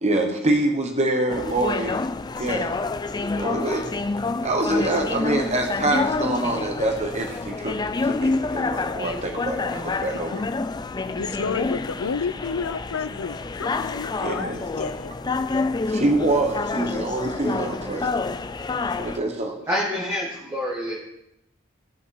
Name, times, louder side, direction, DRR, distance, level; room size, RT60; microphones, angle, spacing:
voice 1, 0.0-2.0 2.4-2.7 3.3-3.9 4.4-7.8 8.0-10.4 14.2-14.6 15.9-18.1 19.0-19.6, right 2 dB, 30° right, 3 dB, 1.1 m, -25 dB
sound 1, 1.3-19.2, left 3 dB, 20° left, 0.3 m, -28 dB
voice 2, 11.2-15.2, left 5 dB, 90° left, 13 dB, 0.6 m, -31 dB
voice 3, 19.7-21.0, left 1 dB, 15° right, -4 dB, 1.5 m, -27 dB
16.0 x 5.5 x 4.7 m, 0.87 s
head